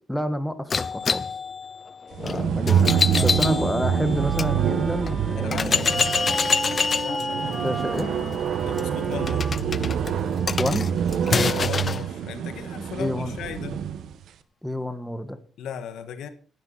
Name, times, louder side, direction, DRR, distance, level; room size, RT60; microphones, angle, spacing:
voice 1, 0.1-1.2 2.2-5.9 7.6-8.1 10.6-10.9 13.0-13.4 14.6-15.4, equal, 5° left, 1.8 m, -28 dB
sound 1, 0.7-4.5 5.1-5.2 5.5-12.0, left 5 dB, 40° left, 0.5 m, -27 dB
sound 2, 2.1-14.1, right 8 dB, 70° right, 1.5 m, -26 dB
Wind instrument woodwind instrument, 3.7-11.2, right 3 dB, 20° right, 5.9 m, -35 dB
voice 2, 5.4-6.2 6.8-7.8 8.6-9.6 11.4-13.8 15.6-16.3, left 8 dB, 80° left, 1.5 m, -36 dB
15.0 x 12.5 x 4.2 m
cardioid pair, 90°, 0 cm